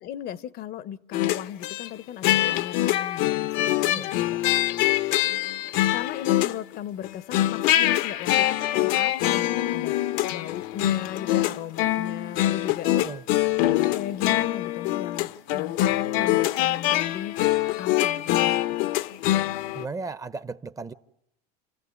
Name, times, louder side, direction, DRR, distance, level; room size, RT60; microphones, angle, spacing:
voice 1, 0.0-4.7 5.9-10.0 10.3-12.9 13.9-18.8, left 11 dB, 50° left, 0.9 m, -37 dB
sound 1, 1.1-1.9 2.2-6.8 7.0-19.8, left 14 dB, 75° left, 1.0 m, -24 dB
voice 2, 12.8-13.2 19.7-20.9, right 4 dB, 15° right, 0.8 m, -36 dB
28.0 x 15.0 x 9.6 m
supercardioid pair, 125°, 20 cm